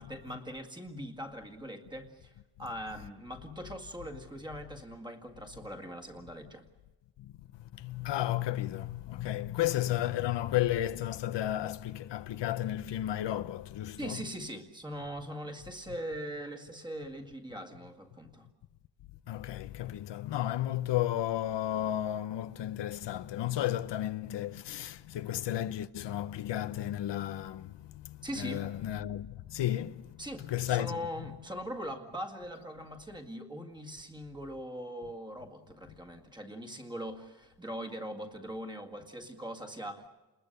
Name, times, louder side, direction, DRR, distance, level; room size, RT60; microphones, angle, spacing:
voice 1, 0.0-2.3 2.6-6.6 14.0-18.5 28.2-28.7 30.2-40.1, equal, 10° right, 2.0 m, -41 dB
voice 2, 7.8-14.2 19.3-30.1 30.5-30.9, left 13 dB, 75° left, 0.8 m, -33 dB
29.5 x 20.5 x 6.6 m
wide cardioid pair, 160°, 43 cm